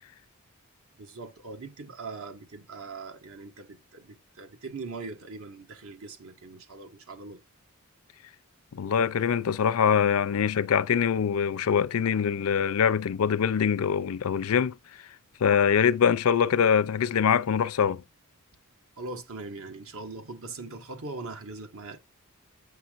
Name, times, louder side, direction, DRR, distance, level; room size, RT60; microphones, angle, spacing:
voice 1, 1.0-7.4 19.0-22.0, right 3 dB, 65° right, 1.3 m, -41 dB
voice 2, 8.7-14.7 15.4-18.0, left 7 dB, 70° left, 0.4 m, -23 dB
8.3 x 5.6 x 2.4 m
head